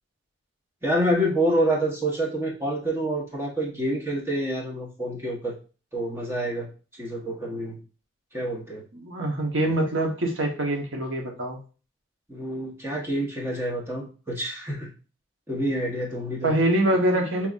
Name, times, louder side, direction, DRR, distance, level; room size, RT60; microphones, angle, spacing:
voice 1, 0.8-5.5 5.9-6.7 7.0-7.8 8.3-8.8 12.3-14.9 15.5-16.5, right 1 dB, 10° right, -2 dB, 1.0 m, -27 dB
voice 2, 8.9-11.6 16.4-17.5, right 1 dB, 75° right, 2 dB, 1.1 m, -24 dB
5.5 x 2.9 x 2.4 m, 0.35 s
head